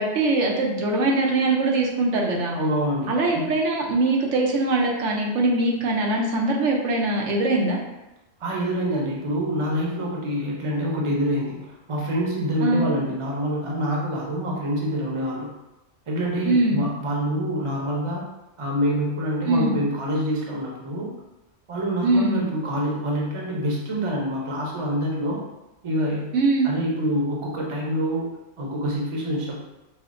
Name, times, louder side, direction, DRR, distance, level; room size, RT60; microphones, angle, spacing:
voice 1, 0.0-2.5 3.1-7.8 12.6-12.9 16.5-16.8 19.5-19.7 22.0-22.4 26.3-26.7, right 2 dB, 90° right, -1 dB, 1.0 m, -22 dB
voice 2, 2.5-3.6 8.4-15.5 16.1-18.2 18.6-21.1 21.7-25.4 25.8-26.3 26.6-28.3 28.6-29.6, equal, 35° right, -3 dB, 0.6 m, -26 dB
5.4 x 2.1 x 2.5 m, 0.98 s
omnidirectional pair, 1.2 m